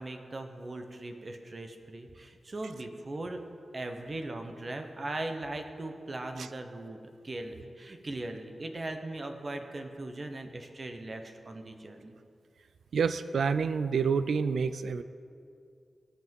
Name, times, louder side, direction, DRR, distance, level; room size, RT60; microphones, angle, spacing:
voice 1, 0.0-3.4 3.7-7.0 7.2-12.1, right 2 dB, 45° right, 5 dB, 1.0 m, -39 dB
voice 2, 12.9-15.0, right 5 dB, 90° right, 12 dB, 0.4 m, -28 dB
17.5 x 5.9 x 5.4 m, 2.4 s
wide cardioid pair, 80°, 0 cm